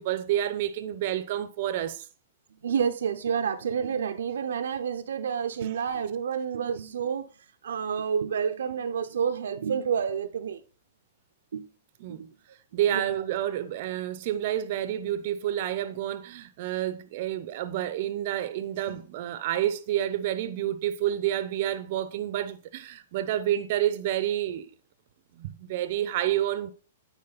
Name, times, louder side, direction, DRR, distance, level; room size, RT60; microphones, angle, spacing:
voice 1, 0.0-2.1 12.0-12.3 12.7-24.7 25.3-26.7, right 12 dB, 55° right, 0.8 m, -29 dB
voice 2, 2.6-7.3 7.6-10.6 11.5-11.7 12.1-12.3 12.9-13.2 18.9-19.0, right 7 dB, 80° right, 0.8 m, -29 dB
9.7 x 4.7 x 4.1 m
hypercardioid pair, 135°, 0 cm